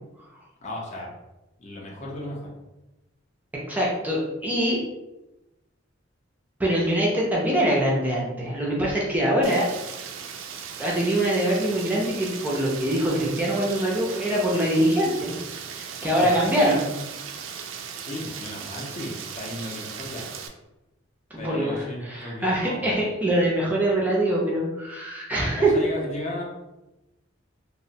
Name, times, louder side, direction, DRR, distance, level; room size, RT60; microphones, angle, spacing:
voice 1, 0.6-1.1 1.6-2.5 16.0-16.5 18.0-20.2 21.4-23.0 25.6-26.4, left 1 dB, 40° left, -2 dB, 0.6 m, -35 dB
voice 2, 3.7-4.8 6.6-9.7 10.8-15.3 15.7-16.9 21.3-25.7, right 1 dB, 10° right, -4 dB, 0.4 m, -23 dB
Rain, 9.4-20.5, right 7 dB, 80° right, 0.3 m, -38 dB
2.8 x 2.1 x 2.6 m, 0.99 s
head